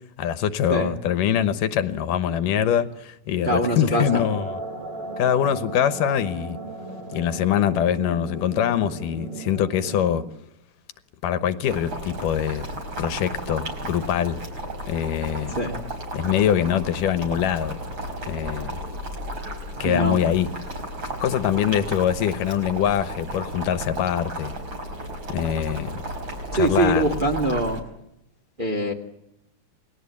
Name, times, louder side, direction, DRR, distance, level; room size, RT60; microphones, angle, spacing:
voice 1, 0.2-4.6 5.2-6.6 7.1-10.3 11.2-12.7 13.0-14.4 14.9-15.6 16.1-17.8 18.3-18.8 19.8-20.5 21.2-24.6 25.3-26.0 26.5-27.2, left 9 dB, 75° left, 12 dB, 2.7 m, -23 dB
voice 2, 3.4-4.2 15.6-15.8 19.8-20.2 26.6-27.8 28.6-28.9, right 1 dB, 20° right, 3 dB, 1.9 m, -23 dB
sound 1, 3.9-10.3, right 2 dB, 70° right, 4.7 m, -36 dB
Boiling, 11.7-27.8, right 1 dB, 35° right, 5.0 m, -34 dB
29.0 x 20.0 x 8.5 m, 0.81 s
omnidirectional pair, 3.9 m